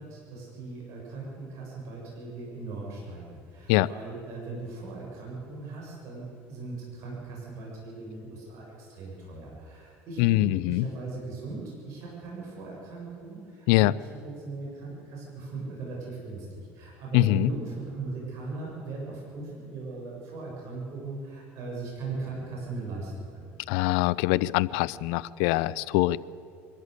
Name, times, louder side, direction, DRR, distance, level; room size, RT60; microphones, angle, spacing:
voice 1, 0.0-23.4, right 3 dB, 60° right, -3 dB, 7.3 m, -39 dB
voice 2, 10.2-10.9 13.7-13.9 17.1-17.5 23.7-26.2, left 18 dB, 80° left, 18 dB, 0.5 m, -23 dB
23.5 x 13.5 x 8.2 m, 2.4 s
supercardioid pair, 115°, 6 cm